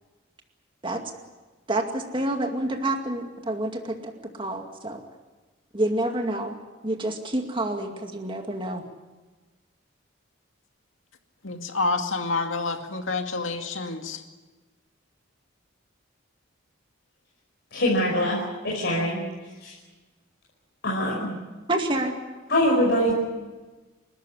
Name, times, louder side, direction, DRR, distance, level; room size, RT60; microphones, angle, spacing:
voice 1, 1.7-5.0 5.7-6.5 6.8-8.8 21.7-22.2, right 1 dB, 25° right, 4 dB, 2.3 m, -28 dB
voice 2, 11.4-14.2, left 3 dB, 70° left, 5 dB, 2.3 m, -28 dB
voice 3, 17.7-18.4 18.6-19.2 19.6-19.7 20.8-21.3 22.5-23.2, equal, 55° left, -3 dB, 5.4 m, -23 dB
29.5 x 13.5 x 9.8 m, 1.2 s
head